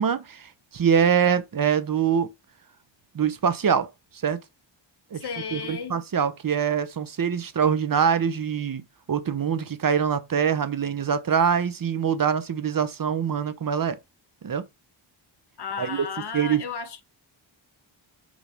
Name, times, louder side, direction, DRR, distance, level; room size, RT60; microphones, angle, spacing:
voice 1, 0.0-2.3 3.1-3.9 4.2-4.4 5.1-5.2 5.5-8.8 9.1-14.0 14.4-14.6 15.8-16.1 16.3-16.6, right 7 dB, 45° right, 0.9 m, -24 dB
voice 2, 5.1-6.0 15.6-17.0, left 6 dB, 55° left, 1.3 m, -34 dB
5.3 x 4.9 x 5.0 m
wide cardioid pair, 140°, 47 cm